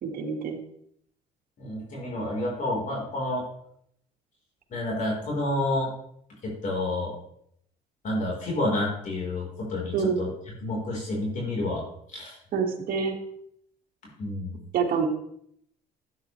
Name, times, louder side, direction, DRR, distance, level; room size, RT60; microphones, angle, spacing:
voice 1, 0.0-0.6 9.9-10.2 12.5-13.2 14.7-15.1, right 6 dB, 55° right, 1 dB, 2.1 m, -26 dB
voice 2, 1.6-3.4 4.7-5.9 6.4-7.1 8.0-10.3 10.6-12.3 14.2-14.6, left 1 dB, 50° left, -2 dB, 4.2 m, -29 dB
12.5 x 9.1 x 3.2 m, 0.71 s
cardioid pair, 110°, 17 cm